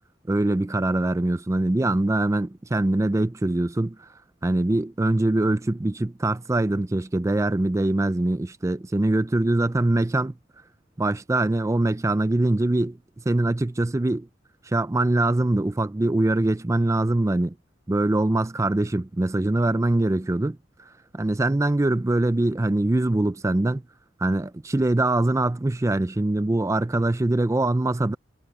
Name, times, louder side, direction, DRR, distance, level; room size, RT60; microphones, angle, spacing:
voice 1, 0.3-4.1 4.4-10.3 11.0-13.0 13.3-14.3 14.6-17.5 17.9-23.8 24.2-28.2, right 2 dB, 15° right, 0.4 m, -23 dB
head